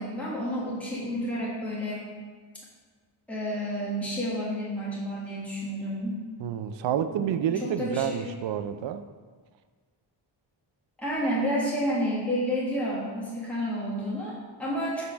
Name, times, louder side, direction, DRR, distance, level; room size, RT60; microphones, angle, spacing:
voice 1, 0.0-2.0 3.3-6.2 7.2-8.3 11.0-15.0, equal, 5° left, -6 dB, 1.3 m, -30 dB
voice 2, 6.4-9.1, right 9 dB, 70° right, 10 dB, 0.5 m, -29 dB
6.5 x 3.5 x 5.0 m, 1.5 s
wide cardioid pair, 115°, 47 cm